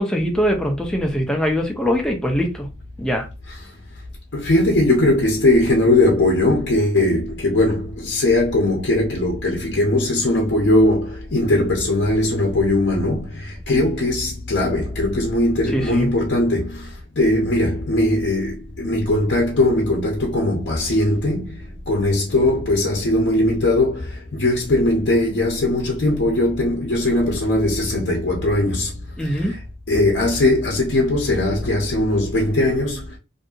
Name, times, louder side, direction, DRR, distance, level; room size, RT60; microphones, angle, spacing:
voice 1, 0.0-2.7 3.0-3.3 15.7-16.1 29.2-29.5, equal, 5° left, 0.5 m, -22 dB
voice 2, 4.3-29.6 29.9-33.2, left 1 dB, 60° left, 0.7 m, -20 dB
2.6 x 2.6 x 2.3 m
head